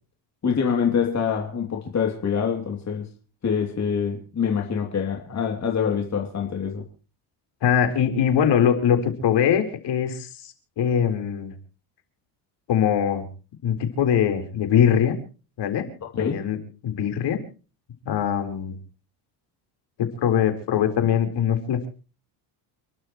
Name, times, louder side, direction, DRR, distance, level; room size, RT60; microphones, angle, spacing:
voice 1, 0.4-3.1 3.4-6.8 16.2-16.4, left 7 dB, 35° left, 1 dB, 3.1 m, -25 dB
voice 2, 7.6-11.5 12.7-13.3 13.6-15.2 15.6-15.9 16.1-16.6 16.8-17.4 18.1-18.8 20.0-21.9, left 8 dB, 55° left, 6 dB, 4.3 m, -22 dB
29.5 x 12.0 x 3.1 m, 0.35 s
cardioid pair, 115°, 49 cm